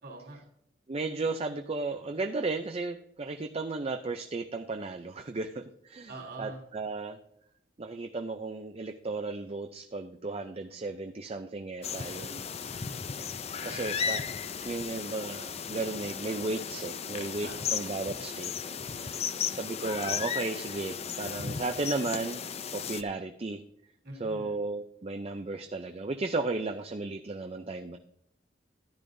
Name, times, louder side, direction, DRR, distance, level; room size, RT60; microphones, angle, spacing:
voice 1, 0.0-0.4 6.1-6.6 12.6-13.0 13.6-14.1 17.4-17.7 19.1-19.5 24.0-24.5, right 2 dB, 60° right, -1 dB, 3.2 m, -45 dB
voice 2, 0.9-6.1 6.4-7.2 7.8-12.4 13.6-14.2 14.6-18.5 18.8-19.2 19.5-22.4 22.7-23.6 24.2-28.0, right 3 dB, 35° right, 6 dB, 0.5 m, -34 dB
sound 1, 11.8-23.0, left 7 dB, 35° left, 0.5 m, -35 dB
13.5 x 10.5 x 2.7 m, 0.74 s
head